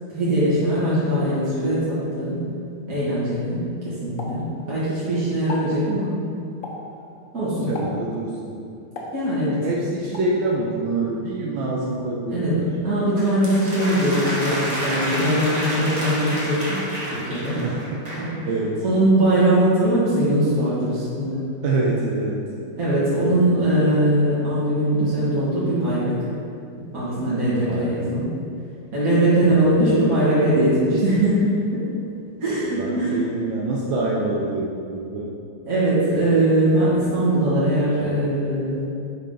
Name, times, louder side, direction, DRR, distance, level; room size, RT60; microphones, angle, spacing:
voice 1, 0.1-2.5 2.9-6.3 7.3-7.8 9.1-9.7 12.3-16.8 17.1-17.6 18.2-18.3 18.8-21.4 22.8-26.1 26.9-28.3 28.9-31.9 32.4-33.2 35.7-38.8, right 1 dB, 45° right, -11 dB, 1.9 m, -21 dB
Explosion, 4.2-5.0 5.4-5.8 6.6-7.0 7.7-8.1 9.0-9.7 10.1-10.4, left 2 dB, 50° left, 1.1 m, -35 dB
voice 2, 7.7-8.6 9.6-12.6 17.5-18.8 21.6-22.4 27.7-28.0 29.4-30.0 32.8-35.3, right 2 dB, 75° right, -3 dB, 1.4 m, -26 dB
sound 1, 13.2-18.3, equal, 25° right, 1.1 m, -29 dB
10.5 x 3.8 x 3.7 m, 2.5 s
omnidirectional pair, 2.1 m